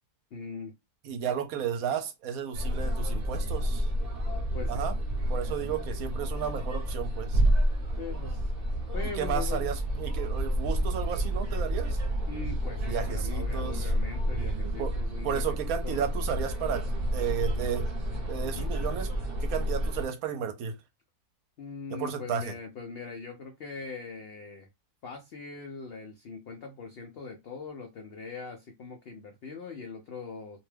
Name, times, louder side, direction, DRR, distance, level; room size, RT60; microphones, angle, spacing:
voice 1, 0.3-0.7 4.5-4.9 7.9-8.5 8.9-9.7 12.3-15.4 15.8-16.1 18.4-18.7 21.6-24.7 25.0-30.6, left 4 dB, 85° left, 0.5 m, -41 dB
voice 2, 1.0-3.9 4.7-4.9 5.3-7.4 9.2-12.0 12.9-13.9 14.8-14.9 15.2-16.8 17.1-17.9 18.3-19.1 19.4-20.7 21.9-22.5, right 8 dB, 70° right, 1.0 m, -33 dB
sound 1, 2.5-20.0, equal, 45° right, 0.8 m, -30 dB
2.6 x 2.2 x 3.2 m
omnidirectional pair, 1.6 m